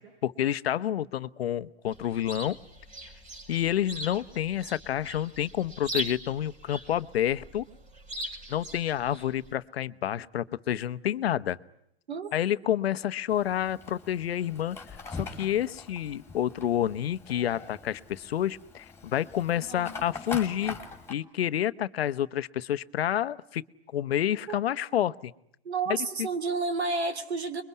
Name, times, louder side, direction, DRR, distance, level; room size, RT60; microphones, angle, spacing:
voice 1, 0.0-2.6 3.5-7.7 8.5-11.6 12.3-14.8 15.1-20.8 21.1-23.6 23.9-25.3 26.2-26.3, left 11 dB, 70° left, 14 dB, 1.0 m, -29 dB
Chirp tweet, 1.9-9.5, equal, 25° right, 4.9 m, -41 dB
Fire, 13.3-21.1, left 4 dB, 10° left, 3.9 m, -42 dB
voice 2, 19.5-19.9 24.5-24.6 25.6-27.6, right 4 dB, 90° right, 11 dB, 2.9 m, -31 dB
26.5 x 22.5 x 9.5 m, 0.76 s
hypercardioid pair, 130°, 31 cm